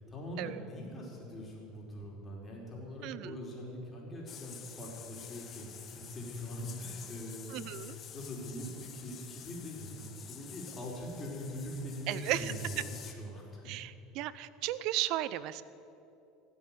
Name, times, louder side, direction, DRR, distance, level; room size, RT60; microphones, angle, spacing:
voice 1, 0.0-13.7, equal, 25° left, -2 dB, 4.6 m, -42 dB
voice 2, 3.0-3.4 7.5-8.0 12.1-12.5 13.6-15.6, right 15 dB, 65° right, 17 dB, 0.6 m, -35 dB
sound 1, 4.3-13.1, left 8 dB, 40° left, 1.4 m, -49 dB
16.0 x 8.1 x 9.1 m, 2.7 s
supercardioid pair, 100°, 0 cm